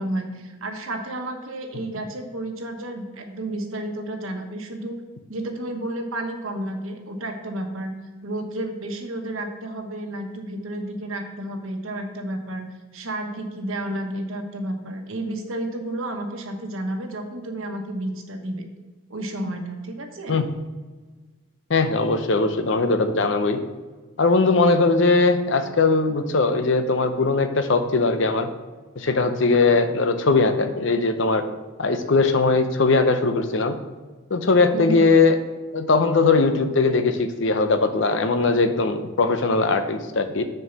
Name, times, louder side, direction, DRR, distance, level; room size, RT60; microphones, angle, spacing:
voice 1, 0.0-5.0 5.3-7.9 8.2-12.7 12.9-18.7 19.1-20.3 34.7-35.0, right 1 dB, 80° right, 4 dB, 1.2 m, -31 dB
voice 2, 21.7-23.6 24.2-28.5 29.0-31.4 31.8-33.8 34.3-35.4 35.7-40.4, left 3 dB, 65° left, 8 dB, 0.7 m, -20 dB
6.4 x 4.7 x 6.0 m, 1.3 s
head